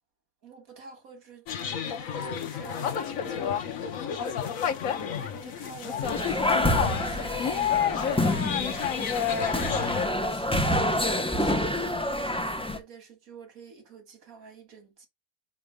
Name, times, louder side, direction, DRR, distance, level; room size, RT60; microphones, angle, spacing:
voice 1, 0.4-7.8 8.5-9.5 9.8-15.1, right 6 dB, 75° right, 2.2 m, -47 dB
sound 1, 1.5-10.1, left 8 dB, 70° left, 1.3 m, -30 dB
sound 2, 6.0-12.8, left 1 dB, 5° left, 0.5 m, -27 dB
5.6 x 4.4 x 5.0 m
omnidirectional pair, 1.5 m